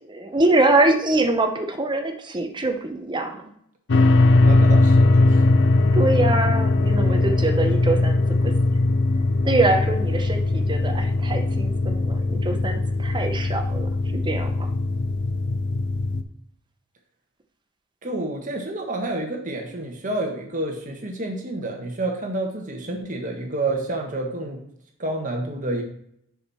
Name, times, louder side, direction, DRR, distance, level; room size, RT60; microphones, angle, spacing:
voice 1, 0.1-3.4 5.9-8.5 9.4-14.7, right 2 dB, 20° right, 6 dB, 0.8 m, -24 dB
sound 1, 3.9-16.2, left 2 dB, 60° left, 0.6 m, -20 dB
voice 2, 4.4-5.3 18.0-24.6 25.0-25.8, right 2 dB, 40° right, 2 dB, 1.5 m, -29 dB
6.4 x 6.3 x 4.2 m, 0.70 s
head